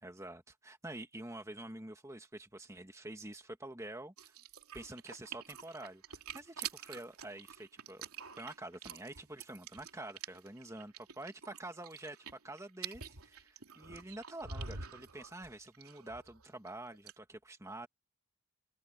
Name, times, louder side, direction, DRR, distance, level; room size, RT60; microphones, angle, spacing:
voice 1, 0.0-4.4 4.7-8.1 8.4-12.2 12.4-17.9, right 1 dB, 15° right, 1.7 m, -47 dB
sound 1, 4.2-16.7 16.9-17.1, right 6 dB, 80° right, 3.1 m, -47 dB
open air
head